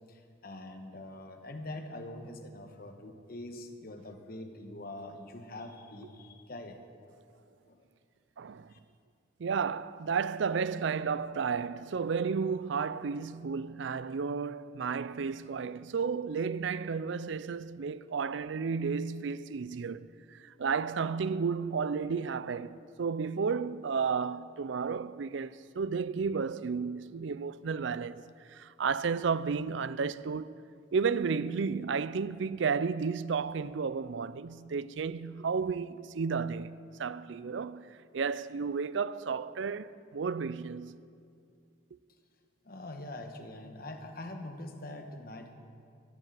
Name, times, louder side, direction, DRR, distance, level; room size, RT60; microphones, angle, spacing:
voice 1, 0.1-6.8 7.7-7.8 8.7-8.8 42.6-45.5, left 1 dB, 50° left, 1.2 m, -44 dB
voice 2, 8.4-8.7 9.4-28.2 28.5-30.5 30.9-37.9 38.1-41.0, right 5 dB, 65° right, 0.4 m, -32 dB
15.5 x 11.0 x 7.5 m
head